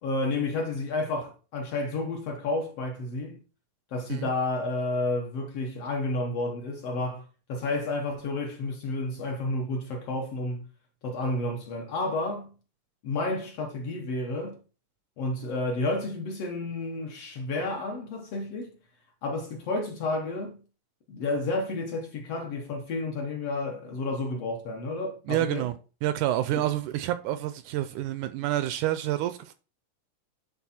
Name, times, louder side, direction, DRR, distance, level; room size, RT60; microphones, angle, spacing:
voice 1, 0.0-3.4 3.9-10.7 11.0-12.5 13.0-14.6 15.2-18.7 19.2-20.6 21.1-25.7 26.5-26.6, left 2 dB, 60° left, 1.7 m, -31 dB
voice 2, 25.3-25.7 26.0-29.5, right 13 dB, 80° right, 1.8 m, -28 dB
10.5 x 3.9 x 4.2 m
omnidirectional pair, 3.8 m